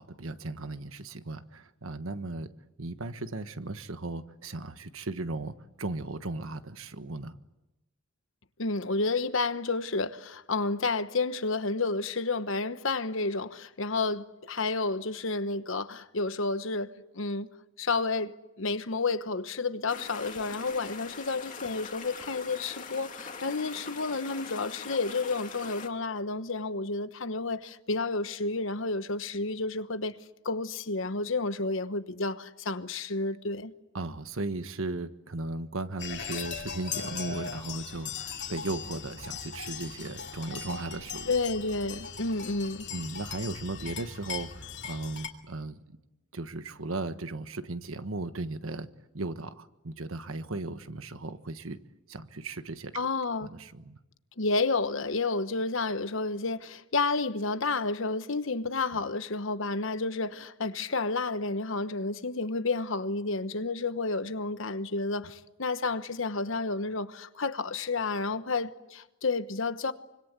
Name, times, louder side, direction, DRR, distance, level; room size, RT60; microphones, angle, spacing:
voice 1, 0.0-2.5 2.8-7.4 33.9-41.4 42.9-46.0 46.3-48.9 49.1-51.8 52.1-52.9 53.4-54.0, right 2 dB, 85° right, 1.4 m, -36 dB
voice 2, 8.6-17.5 17.8-30.2 30.4-33.7 41.3-42.9 52.9-53.5 54.4-69.9, left 3 dB, 70° left, 1.1 m, -31 dB
sound 1, 19.9-25.9, left 5 dB, 40° left, 2.1 m, -42 dB
sound 2, 36.0-45.3, left 6 dB, 55° left, 2.6 m, -39 dB
25.5 x 25.0 x 8.2 m
head